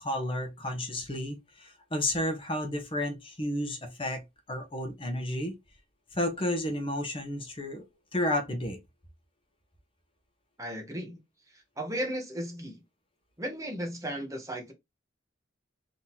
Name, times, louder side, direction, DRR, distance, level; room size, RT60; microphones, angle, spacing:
voice 1, 0.0-4.2 4.5-5.6 6.1-7.8 8.1-8.8, left 1 dB, 30° left, 1.0 m, -32 dB
voice 2, 10.6-11.2 11.5-12.8 13.4-14.7, equal, 15° right, 1.2 m, -35 dB
3.8 x 2.9 x 4.2 m
head